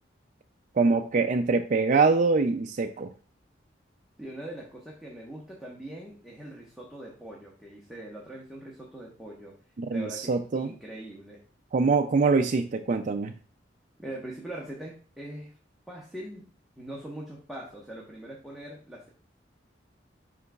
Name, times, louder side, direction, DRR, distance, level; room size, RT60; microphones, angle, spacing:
voice 1, 0.7-3.1 9.8-10.7 11.7-13.3, right 4 dB, 45° right, 5 dB, 0.4 m, -24 dB
voice 2, 4.2-9.5 9.9-11.4 14.0-15.5 15.9-16.5 16.8-19.1, right 1 dB, ahead, -4 dB, 1.1 m, -42 dB
11.0 x 3.9 x 2.3 m, 0.40 s
head